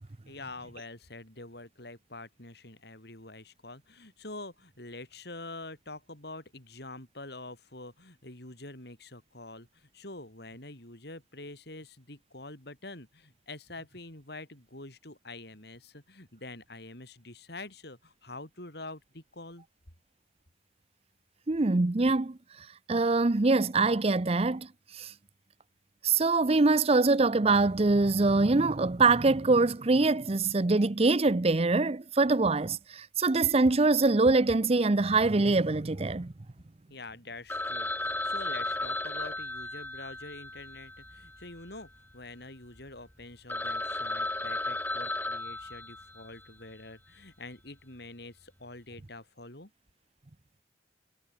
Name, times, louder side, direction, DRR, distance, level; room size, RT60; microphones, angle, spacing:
voice 1, 0.3-19.7 36.9-49.7, left 2 dB, 60° left, 5.5 m, -46 dB
voice 2, 21.5-22.4 22.9-24.7 25.0-25.1 26.0-36.3, right 3 dB, 35° right, 0.6 m, -24 dB
Telephone, 37.5-41.8 42.1-42.2 42.8-42.9 43.2-43.3 43.5-46.5, left 2 dB, 10° left, 3.2 m, -35 dB
head